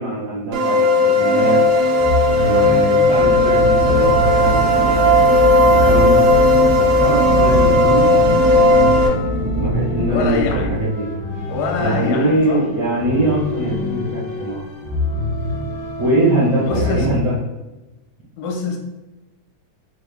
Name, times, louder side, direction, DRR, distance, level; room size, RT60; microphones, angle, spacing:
voice 1, 0.0-1.6 2.4-5.1 5.8-6.2 6.8-9.2 9.6-11.1 11.8-14.7 16.0-17.3, right 1 dB, 70° right, -9 dB, 1.1 m, -22 dB
sound 1, 0.5-9.1, left 1 dB, 90° right, 1.3 m, -15 dB
sound 2, 1.3-17.4, left 2 dB, 60° left, 1.1 m, -27 dB
sound 3, 3.1-10.7, equal, 45° left, 0.7 m, -23 dB
voice 2, 10.1-10.8 11.5-12.6 16.6-17.1 18.4-18.8, left 4 dB, 80° left, 2 dB, 2.0 m, -24 dB
5.4 x 2.2 x 3.3 m, 1.1 s
omnidirectional pair, 3.5 m